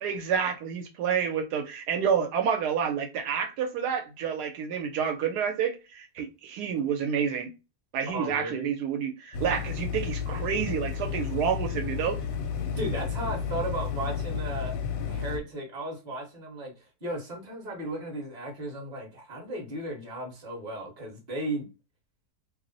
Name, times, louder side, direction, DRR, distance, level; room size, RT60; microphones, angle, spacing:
voice 1, 0.0-7.5 7.9-12.2, right 7 dB, 80° right, 1.1 m, -29 dB
voice 2, 8.1-8.7 12.8-21.7, right 1 dB, 35° right, 0.9 m, -35 dB
sound 1, 9.3-15.4, left 7 dB, 70° left, 0.9 m, -32 dB
2.7 x 2.0 x 3.8 m
omnidirectional pair, 1.7 m